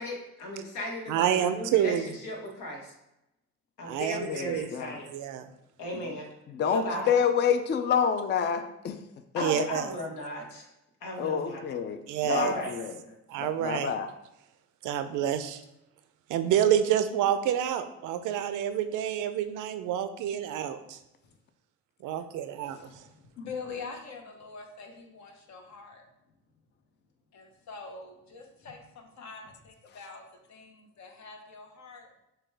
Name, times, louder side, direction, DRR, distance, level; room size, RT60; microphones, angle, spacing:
voice 1, 0.0-2.9 3.8-5.0 5.8-6.2 6.7-7.1 9.3-10.7 11.0-11.6 12.3-12.7 13.0-13.2, left 1 dB, 90° left, 0 dB, 1.2 m, -36 dB
voice 2, 1.1-2.1 3.8-4.7 5.1-5.5 9.4-9.9 12.1-12.5 13.3-13.9 14.8-15.6 16.3-20.8 22.0-22.9, right 10 dB, 85° right, 10 dB, 0.5 m, -28 dB
voice 3, 4.2-5.0 6.6-9.0 9.3-9.7 11.2-12.9 13.4-14.1, left 7 dB, 35° left, 9 dB, 0.4 m, -28 dB
voice 4, 22.7-26.0 27.3-30.2 30.5-32.1, left 4 dB, 65° left, 3 dB, 0.9 m, -44 dB
6.6 x 2.3 x 3.3 m, 0.89 s
cardioid pair, 90°, 30 cm